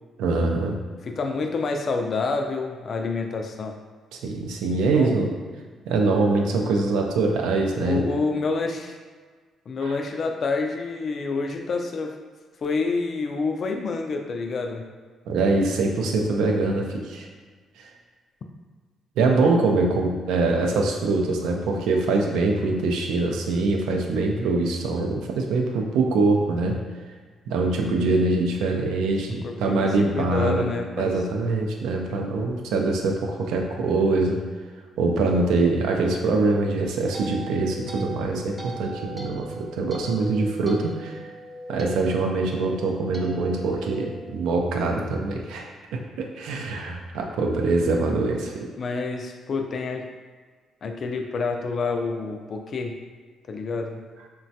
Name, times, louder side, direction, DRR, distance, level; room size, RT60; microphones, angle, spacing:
voice 1, 0.2-0.8 4.2-5.3 5.9-8.1 9.8-9.9 15.3-17.3 17.8-17.9 19.2-26.8 27.5-30.7 31.0-34.4 35.0-41.2 41.7-48.7, right 3 dB, 90° right, 2 dB, 0.4 m, -23 dB
voice 2, 1.0-3.7 4.9-5.2 7.8-9.0 9.7-12.2 12.6-14.9 29.4-31.2 32.1-32.2 48.1-48.2 48.8-50.1 50.8-53.0 53.5-54.0, left 4 dB, 50° left, 4 dB, 0.3 m, -28 dB
sound 1, 36.6-45.0, right 1 dB, 10° right, 0.4 m, -39 dB
3.1 x 2.2 x 2.7 m, 1.5 s
cardioid pair, 90°, 0 cm